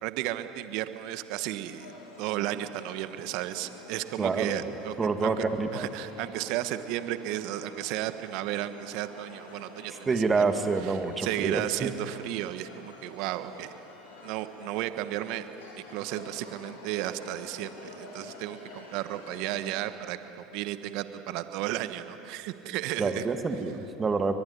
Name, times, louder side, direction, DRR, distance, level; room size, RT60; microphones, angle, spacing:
voice 1, 0.0-1.9 2.2-5.4 5.7-10.4 10.8-13.7 14.2-15.5 15.9-20.2 20.5-23.2, right 14 dB, 65° right, 11 dB, 1.2 m, -34 dB
sound 1, 1.6-19.9, left 3 dB, 80° left, 5.2 m, -49 dB
voice 2, 4.2-4.6 5.0-5.9 10.1-11.9 23.0-24.3, right 4 dB, 25° right, 8 dB, 2.0 m, -27 dB
23.5 x 20.5 x 9.7 m, 3.0 s
hypercardioid pair, 85°, 0 cm